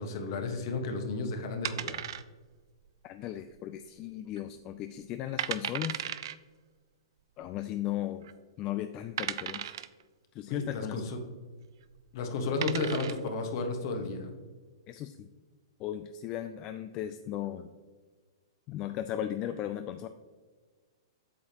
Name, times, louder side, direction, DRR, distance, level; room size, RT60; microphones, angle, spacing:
voice 1, 0.0-2.1 10.5-11.2 12.1-14.3, left 3 dB, 55° left, 5 dB, 1.3 m, -33 dB
sound 1, 1.6-2.6 2.9-3.0 3.6-4.0 4.4-4.5 5.0-5.1 5.4-6.3 7.4-7.5 8.2-8.3 9.2-10.0 11.8-12.0 12.4-13.3, right 10 dB, 65° right, 0.4 m, -35 dB
voice 2, 3.0-6.1 7.4-8.3 8.6-9.8 10.3-11.0 12.5-12.6 14.9-15.3 15.8-17.7 18.7-20.1, left 12 dB, 30° left, 9 dB, 0.3 m, -36 dB
8.3 x 6.6 x 2.9 m, 1.4 s
hypercardioid pair, 130°, 3 cm